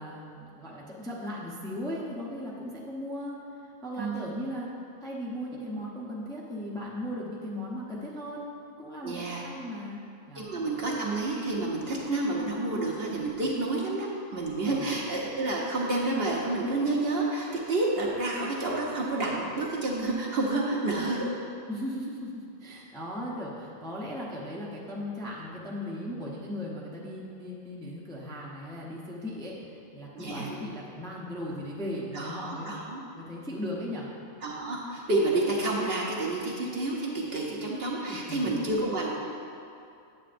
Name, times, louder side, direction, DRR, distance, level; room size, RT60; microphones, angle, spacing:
voice 1, 0.0-4.7 5.0-10.0 10.3-10.5 14.6-14.9 21.7-32.7 33.1-34.1 38.1-38.7, left 1 dB, 5° left, -5 dB, 0.6 m, -37 dB
voice 2, 4.0-4.4 9.0-9.4 10.3-21.3 30.1-30.5 32.1-33.0 34.4-39.1, right 2 dB, 50° right, -3 dB, 0.9 m, -29 dB
8.9 x 7.6 x 2.5 m, 2.5 s
omnidirectional pair, 1.5 m